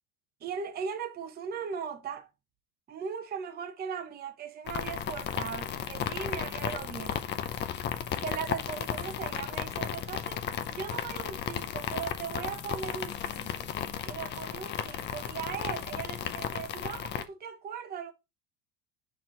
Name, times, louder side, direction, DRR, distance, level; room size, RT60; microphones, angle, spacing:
voice 1, 0.4-2.3 2.9-7.2 8.2-13.7 14.0-18.1, right 7 dB, 20° right, 0.7 m, -38 dB
sound 1, 4.7-17.2, left 9 dB, 25° left, 0.4 m, -35 dB
5.9 x 4.5 x 3.7 m
cardioid pair, 155°, 43 cm